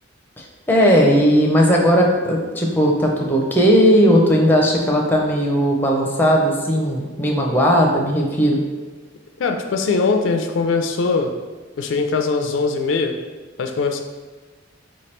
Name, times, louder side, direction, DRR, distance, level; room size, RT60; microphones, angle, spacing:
voice 1, 0.4-8.6, equal, 10° left, -1 dB, 0.5 m, -17 dB
voice 2, 9.4-11.3 11.8-13.1 13.6-14.0, left 4 dB, 65° left, 5 dB, 0.3 m, -21 dB
4.4 x 2.9 x 3.2 m, 1.3 s
head